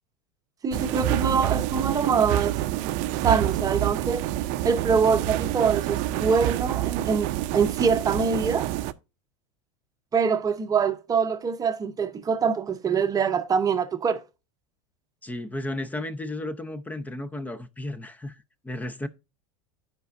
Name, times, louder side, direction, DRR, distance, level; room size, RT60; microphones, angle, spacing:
voice 1, 0.6-2.6 3.2-4.2 4.6-8.7 10.1-14.2, right 6 dB, 25° right, 0.9 m, -24 dB
sound 1, 0.7-8.9, right 14 dB, 55° right, 0.6 m, -27 dB
voice 2, 15.2-19.1, left 1 dB, 10° left, 0.7 m, -34 dB
13.5 x 5.3 x 2.6 m
supercardioid pair, 110°, 16 cm